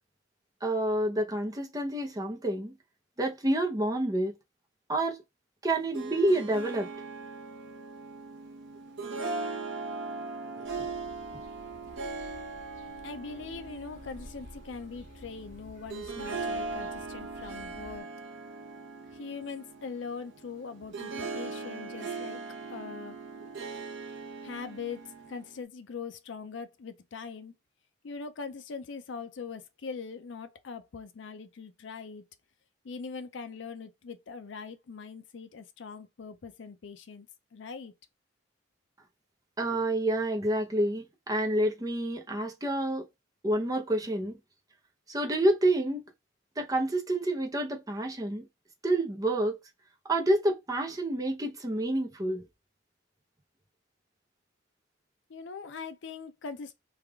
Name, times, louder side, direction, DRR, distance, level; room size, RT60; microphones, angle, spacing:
voice 1, 0.6-2.7 3.2-4.3 4.9-5.2 5.6-6.9 39.6-43.1 43.4-44.4 45.1-46.0 46.6-48.5 48.8-49.6 50.0-52.4, right 1 dB, 20° right, 0.6 m, -28 dB
Harp, 5.7-25.6, right 3 dB, 70° right, 0.8 m, -39 dB
sound 1, 10.6-18.0, left 1 dB, 45° left, 1.5 m, -52 dB
voice 2, 13.0-18.1 19.1-22.4 22.7-23.2 24.4-27.5 28.0-32.2 32.8-37.3 37.5-37.9 55.3-56.7, left 5 dB, 70° left, 0.5 m, -41 dB
3.4 x 2.4 x 3.4 m
head